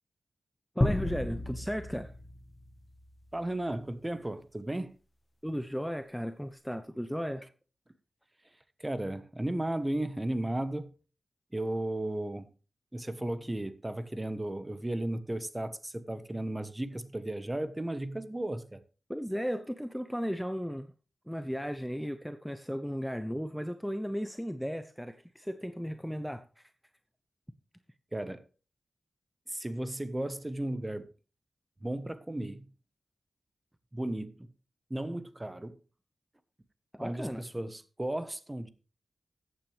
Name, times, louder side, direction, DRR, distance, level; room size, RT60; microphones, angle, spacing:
sound 1, 0.8-3.4, left 1 dB, 20° left, 1.4 m, -32 dB
voice 1, 0.8-2.1 5.4-7.4 19.1-20.9 21.3-26.7 36.9-37.4, equal, ahead, 0.8 m, -35 dB
voice 2, 3.3-4.9 8.8-10.9 11.5-12.5 12.9-18.8 28.1-28.5 29.5-31.1 31.8-32.7 33.9-34.5 34.9-35.8 37.0-38.7, right 1 dB, 20° right, 1.3 m, -35 dB
14.0 x 9.0 x 3.4 m
cardioid pair, 55°, 0 cm